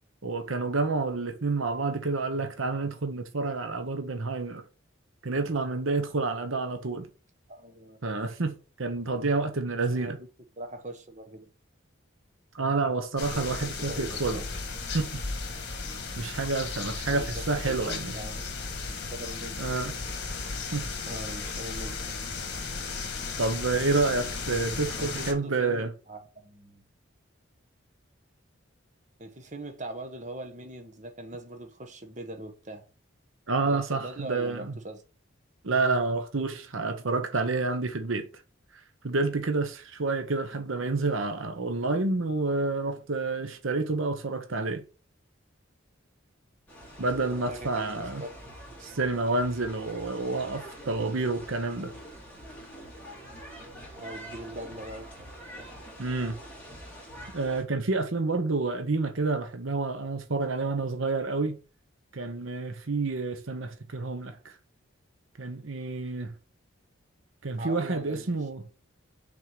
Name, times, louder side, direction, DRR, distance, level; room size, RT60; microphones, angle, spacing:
voice 1, 0.2-4.6 5.2-7.1 8.0-10.2 12.5-14.4 14.9-15.2 16.2-18.2 19.6-19.9 20.7-20.9 23.4-25.9 33.5-34.7 35.6-38.3 39.0-44.8 47.0-48.2 48.8-51.9 56.0-56.4 57.3-61.6 62.1-64.5 65.4-66.3 67.4-68.6, right 3 dB, 75° right, 1.0 m, -29 dB
voice 2, 7.5-8.0 9.9-10.3 10.6-11.5 13.3-14.4 17.1-17.3 17.7-19.6 21.1-22.3 25.0-26.8 29.2-32.8 33.6-35.0 40.5-40.6 47.3-48.7 54.0-55.3 67.6-68.3, right 1 dB, 35° right, 1.2 m, -42 dB
sound 1, 13.2-25.3, left 4 dB, 55° left, 1.6 m, -35 dB
sound 2, 46.7-57.6, equal, 10° left, 2.5 m, -45 dB
6.0 x 4.4 x 6.1 m
head